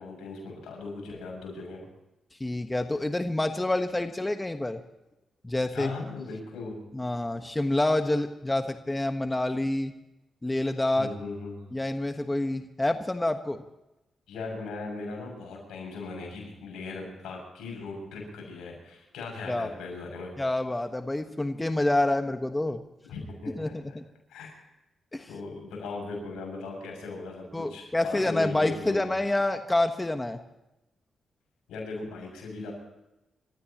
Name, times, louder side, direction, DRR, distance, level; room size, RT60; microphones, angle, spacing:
voice 1, 0.0-1.8 5.7-6.8 10.9-11.6 14.3-20.3 23.1-24.0 24.3-24.5 25.3-29.1 31.7-32.7, left 3 dB, 90° left, 1 dB, 7.3 m, -38 dB
voice 2, 2.4-4.8 5.4-5.9 6.9-9.9 10.4-11.1 11.7-13.6 19.5-19.7 20.4-22.8 23.6-24.0 25.1-25.3 27.5-30.4, left 1 dB, 20° left, 7 dB, 1.4 m, -27 dB
28.5 x 15.0 x 3.1 m, 0.93 s
supercardioid pair, 55°, 0 cm